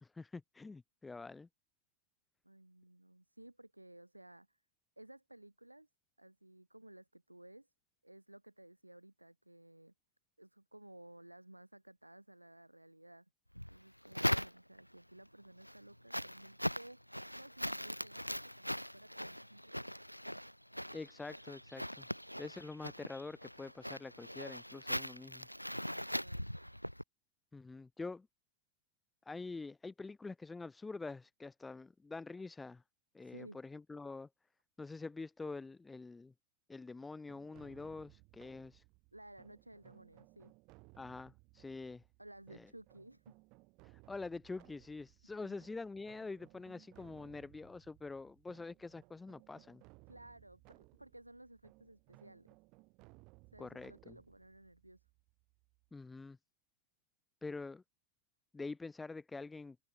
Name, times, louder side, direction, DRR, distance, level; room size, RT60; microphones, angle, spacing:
voice 1, 0.0-1.5 20.9-22.1 22.4-25.5 27.5-28.3 29.2-32.8 33.1-34.3 34.8-36.3 36.7-38.8 41.0-42.0 42.5-42.7 43.8-49.8 53.6-54.2 55.9-56.4 57.4-57.8 58.5-59.8, left 3 dB, 10° left, 0.7 m, -46 dB
voice 2, 2.4-4.6 5.0-5.9 6.2-7.7 8.0-9.9 10.4-19.9 25.9-26.6 33.2-33.6 39.1-40.5 42.2-43.3 45.4-45.6 50.1-52.6 53.5-55.1, right 1 dB, 85° right, 3.7 m, -57 dB
sound 1, 13.5-15.0 15.4-27.0, equal, 90° left, 0.5 m, -40 dB
sound 2, 37.3-56.0, right 26 dB, 40° right, 6.2 m, -63 dB
figure-of-eight pair, 90°, 0 cm